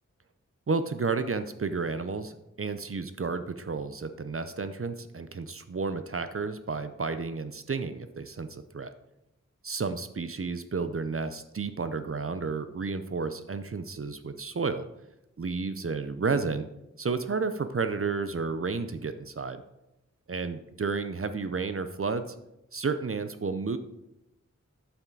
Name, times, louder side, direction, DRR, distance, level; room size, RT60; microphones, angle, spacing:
voice 1, 0.7-2.3 2.6-8.9 9.6-14.8 15.4-16.6 17.0-19.6 20.3-22.3 22.7-23.8, right 4 dB, 45° right, 11 dB, 0.6 m, -31 dB
9.0 x 7.1 x 3.9 m, 0.89 s
wide cardioid pair, 45°, 31 cm